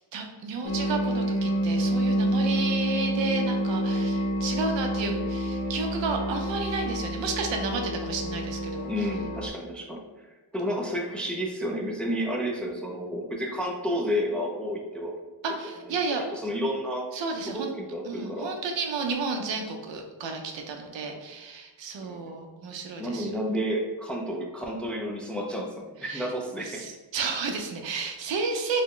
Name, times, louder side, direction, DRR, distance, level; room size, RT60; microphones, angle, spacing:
voice 1, 0.1-8.9 15.4-16.2 17.1-17.7 18.1-23.4 26.0-26.3 26.6-28.8, right 4 dB, 80° right, 3 dB, 0.6 m, -32 dB
sound 1, 0.6-9.5, right 1 dB, 55° left, 0.6 m, -28 dB
voice 2, 4.0-4.4 8.9-10.0 10.5-15.1 15.9-17.1 17.5-18.6 22.0-22.3 23.0-26.8, equal, 5° left, 0 dB, 0.4 m, -31 dB
4.0 x 2.1 x 3.1 m, 1.2 s
cardioid pair, 90°, 43 cm